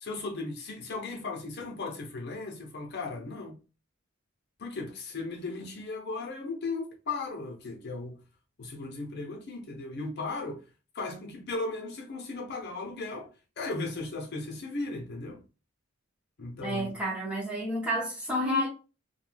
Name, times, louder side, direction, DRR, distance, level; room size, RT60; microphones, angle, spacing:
voice 1, 0.0-3.6 4.6-8.2 8.6-10.6 10.9-13.3 13.6-15.4 16.4-17.0, left 3 dB, 55° left, 0.6 m, -36 dB
voice 2, 16.6-18.7, equal, 5° right, 0.6 m, -30 dB
2.2 x 2.1 x 3.2 m
head